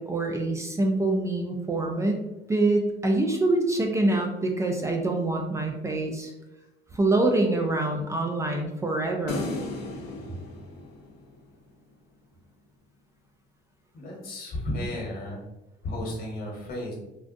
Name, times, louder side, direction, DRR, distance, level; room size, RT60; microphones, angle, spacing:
voice 1, 0.0-2.2 2.5-6.3 6.9-9.5, right 2 dB, 15° right, 2 dB, 0.4 m, -25 dB
sound 1, 9.3-11.7, left 2 dB, 90° left, 0.8 m, -36 dB
voice 2, 13.9-15.4 15.8-16.9, left 1 dB, 65° left, -2 dB, 1.2 m, -33 dB
3.7 x 2.3 x 2.5 m, 0.96 s
cardioid pair, 110°, 17 cm